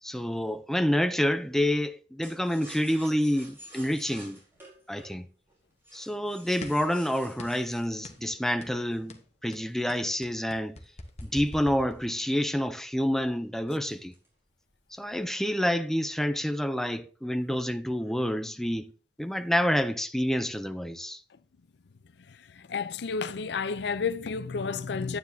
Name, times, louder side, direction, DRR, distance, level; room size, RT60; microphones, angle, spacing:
voice 1, 0.0-4.4 4.9-5.3 5.9-10.8 11.2-14.1 14.9-18.9 19.2-21.2, equal, ahead, 0.5 m, -28 dB
sound 1, 2.2-9.1 9.7-12.1 12.5-12.6 12.9-13.2 13.7-14.4 14.7-15.3, right 1 dB, 15° right, 4.4 m, -51 dB
sound 2, 6.6-6.9 7.4-7.7 8.0-8.3 8.6-8.8 9.1-12.4, left 1 dB, 40° left, 1.0 m, -43 dB
voice 2, 22.3-25.2, left 5 dB, 70° left, 0.5 m, -31 dB
9.5 x 9.4 x 2.7 m
head